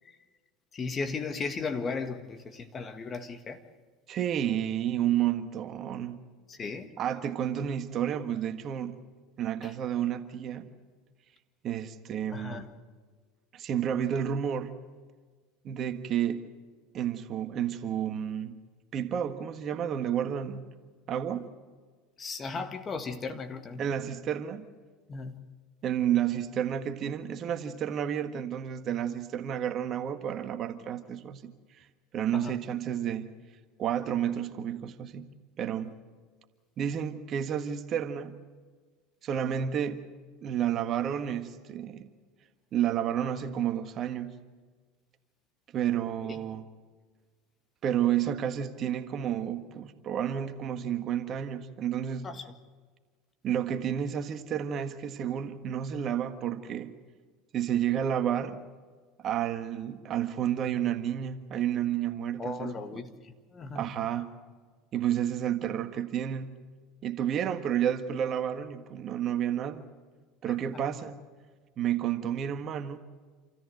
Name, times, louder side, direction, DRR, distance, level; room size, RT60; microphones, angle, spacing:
voice 1, 0.7-3.6 6.5-6.9 9.6-9.7 12.3-12.7 22.2-23.8 25.1-25.4 32.3-32.5 46.2-46.4 52.2-52.4 62.4-63.9 70.7-70.8, left 4 dB, 30° left, 1.8 m, -36 dB
voice 2, 4.1-6.2 7.0-9.0 9.4-10.7 11.6-12.7 13.5-14.7 15.6-16.5 16.9-18.6 18.9-20.7 21.1-21.5 22.6-22.7 23.8-24.7 25.8-31.5 31.8-31.9 32.1-33.3 33.8-35.3 35.6-35.9 36.8-38.4 39.2-40.0 40.4-42.1 42.7-44.4 45.7-46.6 47.8-52.3 53.4-56.9 57.5-58.6 59.2-63.0 63.7-64.3 64.9-66.5 67.0-69.8 70.4-71.2 71.8-73.0, right 9 dB, 45° right, 1.5 m, -31 dB
27.5 x 14.0 x 7.9 m
hypercardioid pair, 85°, 0 cm